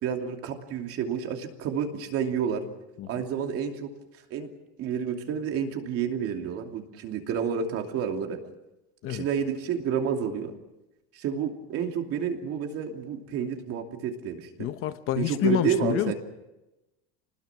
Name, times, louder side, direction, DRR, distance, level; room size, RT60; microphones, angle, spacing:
voice 1, 0.0-2.6 3.1-3.9 4.3-4.5 4.8-8.4 9.1-10.5 11.1-14.7 15.2-16.1, right 7 dB, 45° right, 3 dB, 2.8 m, -30 dB
voice 2, 14.6-16.1, left 13 dB, 40° left, 11 dB, 0.9 m, -28 dB
26.5 x 20.5 x 6.1 m, 0.97 s
cardioid pair, 175°, 34 cm